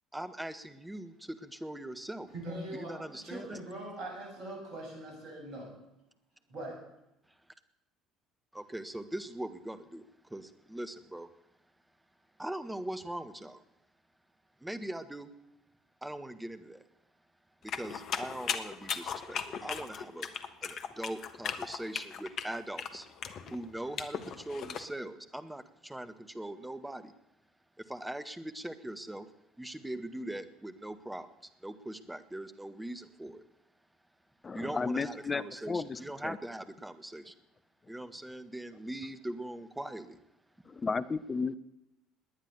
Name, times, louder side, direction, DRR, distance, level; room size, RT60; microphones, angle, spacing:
voice 1, 0.1-2.3 2.7-3.6 8.5-11.3 12.4-13.6 14.6-15.3 16.0-16.8 17.6-20.3 20.6-23.1 23.5-27.1 27.8-29.3 29.6-31.3 31.6-33.4 34.5-37.3 37.9-40.2, right 1 dB, 10° right, 10 dB, 1.5 m, -41 dB
voice 2, 2.3-5.7 6.5-6.8, right 1 dB, 50° right, 1 dB, 7.3 m, -42 dB
sound 1, 17.7-24.8, left 7 dB, 50° left, 1.3 m, -37 dB
voice 3, 34.4-36.4 40.7-41.5, left 4 dB, 30° left, 14 dB, 0.8 m, -33 dB
19.0 x 10.0 x 6.9 m, 0.87 s
figure-of-eight pair, 55°, 0 cm